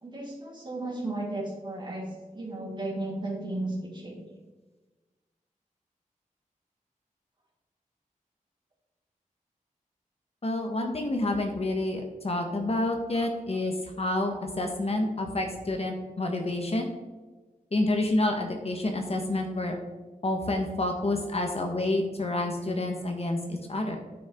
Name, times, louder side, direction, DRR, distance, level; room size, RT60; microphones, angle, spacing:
voice 1, 0.0-4.3, right 2 dB, 35° right, -2 dB, 3.0 m, -34 dB
voice 2, 10.4-16.8 17.7-19.8 20.2-24.0, left 2 dB, 45° left, 3 dB, 1.4 m, -28 dB
9.6 x 8.6 x 3.7 m, 1.2 s
wide cardioid pair, 95°, 14 cm